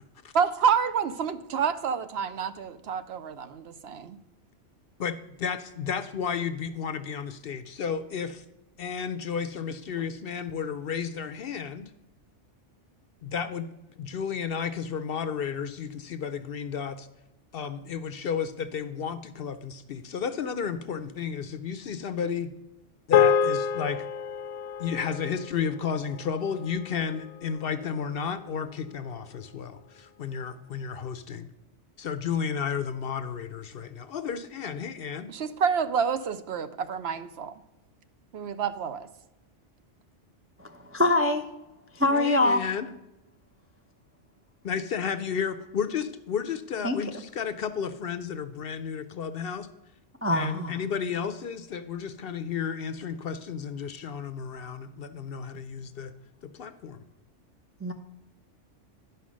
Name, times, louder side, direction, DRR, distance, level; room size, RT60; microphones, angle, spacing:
voice 1, 0.3-4.2 35.3-37.5 38.3-39.1, right 7 dB, 65° right, 11 dB, 0.8 m, -28 dB
voice 2, 5.0-8.4 8.8-11.9 13.2-13.7 14.0-17.1 17.5-22.5 23.1-24.1 24.8-31.5 32.0-35.3 42.1-42.9 44.6-49.7 50.3-56.1 56.4-57.0, left 7 dB, 60° left, 11 dB, 0.7 m, -32 dB
sound 1, 23.1-27.6, left 8 dB, 80° left, 0.9 m, -27 dB
voice 3, 40.6-41.4 41.9-42.6 46.8-47.0 50.2-50.7 57.8-57.9, left 2 dB, 20° right, 4 dB, 0.4 m, -24 dB
10.5 x 5.7 x 6.1 m, 0.96 s
omnidirectional pair, 1.2 m